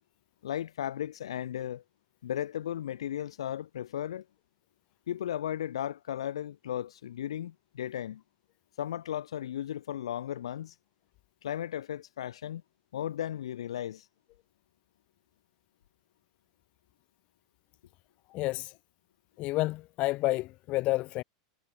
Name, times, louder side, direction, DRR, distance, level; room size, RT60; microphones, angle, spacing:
voice 1, 0.4-1.8 2.2-4.2 5.1-8.2 8.8-10.7 11.4-12.6 12.9-14.1, left 11 dB, 85° left, 1.1 m, -35 dB
voice 2, 18.3-18.7 19.4-21.2, left 19 dB, 45° left, 1.2 m, -30 dB
hypercardioid pair, 115°, 3 cm